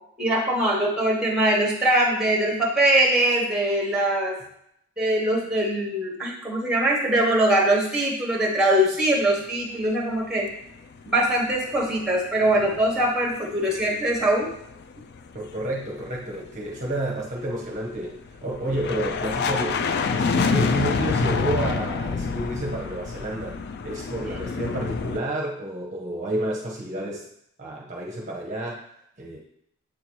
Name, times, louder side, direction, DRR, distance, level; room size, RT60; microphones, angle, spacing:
voice 1, 0.2-4.4 5.0-10.5 11.0-14.5 20.3-20.6, right 1 dB, 5° right, -2 dB, 1.0 m, -22 dB
sound 1, 11.1-12.0 12.3-13.2 13.4-25.2, left 5 dB, 50° left, 0.3 m, -28 dB
voice 2, 15.3-19.8 20.1-23.6 23.8-27.3 27.6-28.8 29.2-29.4, right 1 dB, 35° right, -2 dB, 0.7 m, -30 dB
7.5 x 2.8 x 4.5 m, 0.75 s
head